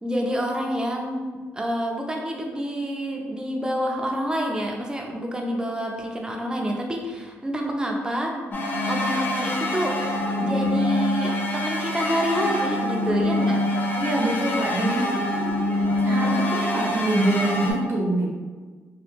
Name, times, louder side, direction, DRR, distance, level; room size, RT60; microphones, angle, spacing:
voice 1, 0.0-1.2 1.5-8.3 8.9-10.0 10.3-13.6, equal, 15° right, 1 dB, 0.5 m, -28 dB
sound 1, 8.5-17.7, left 1 dB, 45° left, 0.6 m, -25 dB
voice 2, 14.0-15.1 16.0-18.3, right 2 dB, 55° right, -4 dB, 0.7 m, -24 dB
2.9 x 2.3 x 3.3 m, 1.4 s
cardioid pair, 95°, 5 cm